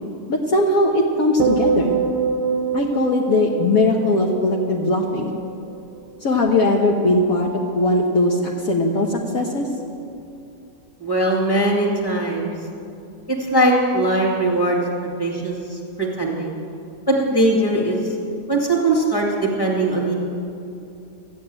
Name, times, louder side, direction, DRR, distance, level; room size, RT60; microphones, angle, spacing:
voice 1, 0.3-2.0 2.7-5.4 6.2-7.5 7.8-9.1 9.3-9.7, left 2 dB, 60° left, -1 dB, 1.4 m, -19 dB
sound 1, 1.4-5.8 6.1-6.5, right 6 dB, 90° right, 1.5 m, -25 dB
voice 2, 11.0-12.5 13.3-16.5 17.1-18.0 18.5-20.2, right 1 dB, 15° left, -1 dB, 2.2 m, -20 dB
13.5 x 8.4 x 8.8 m, 2.6 s
omnidirectional pair, 1.8 m